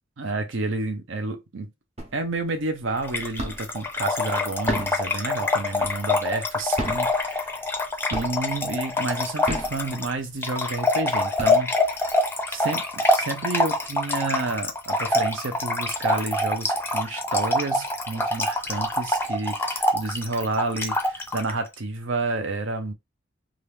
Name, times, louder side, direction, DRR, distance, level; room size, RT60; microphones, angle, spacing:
voice 1, 0.2-1.7 2.1-7.5 8.1-11.7 12.0-12.1 12.5-22.9, right 3 dB, 70° right, 0.7 m, -30 dB
Hitting Ball, 2.0-2.5 2.8-3.8 4.5-6.2 6.7-7.8 8.1-8.7 9.3-10.3 10.8-10.9 11.2-12.1, right 1 dB, 35° right, 0.8 m, -33 dB
Trickle dribble / Fill (with liquid), 3.0-21.5, left 1 dB, 10° left, 0.5 m, -25 dB
2.9 x 2.4 x 3.4 m
head